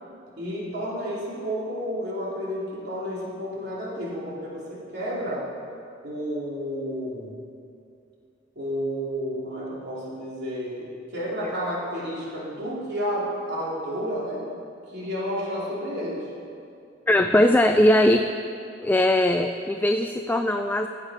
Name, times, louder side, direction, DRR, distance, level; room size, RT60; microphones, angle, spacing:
voice 1, 0.4-5.5 6.0-7.3 8.5-14.5 14.9-16.3, equal, 60° right, -6 dB, 3.1 m, -31 dB
voice 2, 17.1-18.3 18.8-20.9, left 1 dB, 10° left, 6 dB, 0.3 m, -20 dB
15.5 x 8.1 x 4.9 m, 2.5 s
head